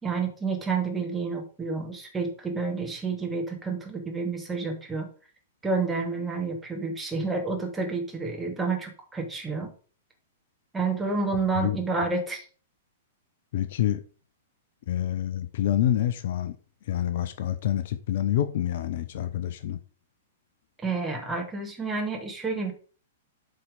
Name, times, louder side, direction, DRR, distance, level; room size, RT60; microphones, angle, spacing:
voice 1, 0.0-5.1 5.6-9.7 10.7-12.4 20.8-22.7, right 4 dB, 10° right, 2.3 m, -29 dB
voice 2, 13.5-14.0 14.9-16.5 16.9-19.8, left 11 dB, 55° left, 0.7 m, -27 dB
7.9 x 4.5 x 5.1 m
figure-of-eight pair, 105°, 0 cm